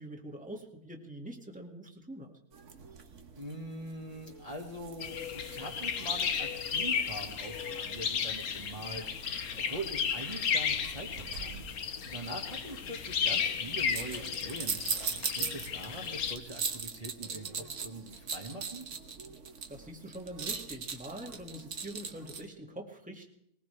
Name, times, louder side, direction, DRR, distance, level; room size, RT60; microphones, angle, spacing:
voice 1, 0.0-2.3 19.7-23.3, right 1 dB, 5° right, 0 dB, 2.1 m, -44 dB
sound 1, 2.5-22.5, right 5 dB, 55° right, 1.5 m, -42 dB
voice 2, 3.3-11.6 12.0-14.8 15.4-18.9, right 1 dB, 25° right, -1 dB, 1.8 m, -43 dB
sound 2, 5.0-16.4, left 7 dB, 80° left, 1.5 m, -34 dB
21.0 x 20.5 x 3.4 m, 0.76 s
omnidirectional pair, 1.5 m